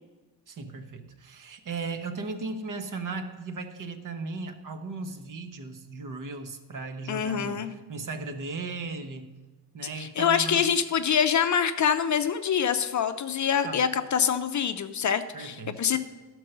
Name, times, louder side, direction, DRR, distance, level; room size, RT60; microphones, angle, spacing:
voice 1, 0.5-9.3 9.7-10.7 13.6-13.8 15.3-16.0, right 3 dB, 50° right, 7 dB, 0.9 m, -37 dB
voice 2, 7.1-7.7 10.0-16.0, left 7 dB, 45° left, 9 dB, 0.5 m, -25 dB
13.0 x 4.6 x 6.6 m, 1.2 s
wide cardioid pair, 170°, 40 cm